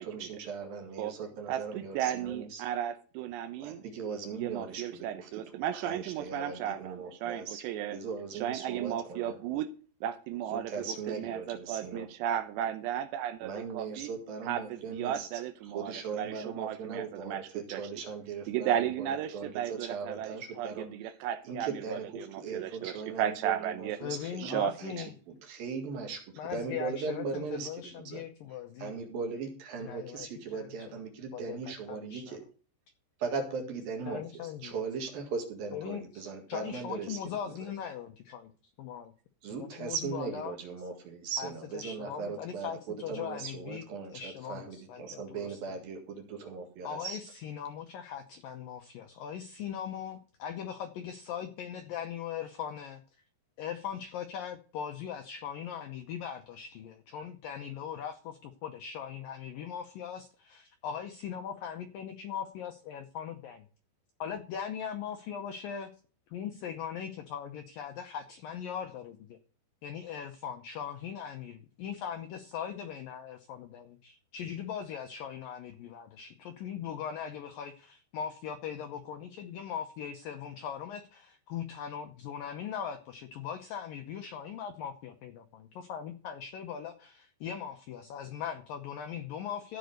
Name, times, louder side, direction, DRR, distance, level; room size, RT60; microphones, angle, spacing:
voice 1, 0.0-2.6 3.6-5.4 5.7-7.6 7.9-9.4 10.5-12.1 13.4-15.3 15.7-20.9 21.4-27.7 28.0-28.2 28.8-32.4 33.2-37.2 37.5-37.7 39.4-47.2, right 5 dB, 60° right, 4 dB, 3.4 m, -39 dB
voice 2, 1.5-3.8 4.3-8.0 8.4-9.7 10.0-14.1 14.5-17.4 17.7-17.8 18.5-24.0 24.4-25.0, right 10 dB, 80° right, 12 dB, 2.9 m, -34 dB
voice 3, 24.0-25.1 26.4-29.0 29.8-30.3 30.5-30.9 31.3-32.4 34.1-34.7 35.7-38.5 38.8-39.1 39.5-40.6 41.4-43.8 44.1-45.0 45.3-45.6 46.8-53.0 53.6-63.7 64.2-65.9 66.3-69.4 69.8-89.8, left 8 dB, 80° left, 7 dB, 2.0 m, -40 dB
15.0 x 5.3 x 6.5 m, 0.39 s
omnidirectional pair, 5.2 m